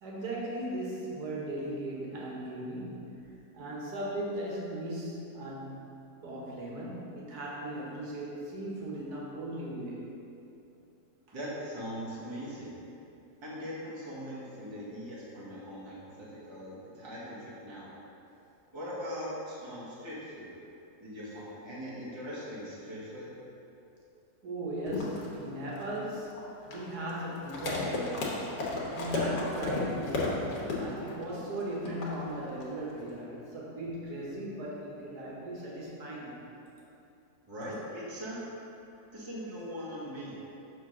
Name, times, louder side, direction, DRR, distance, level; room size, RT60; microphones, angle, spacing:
voice 1, 0.0-5.8 6.2-10.1 24.4-26.3 26.7-28.7 29.0-36.4, right 1 dB, 60° right, -4 dB, 1.8 m, -38 dB
voice 2, 11.3-12.8 13.4-17.9 18.7-20.5 21.0-23.3 37.5-38.4 39.1-40.4, equal, 20° right, -7 dB, 1.1 m, -40 dB
sound 1, 24.9-33.2, left 2 dB, 70° left, 1.7 m, -34 dB
6.3 x 3.8 x 6.0 m, 2.8 s
omnidirectional pair, 1.9 m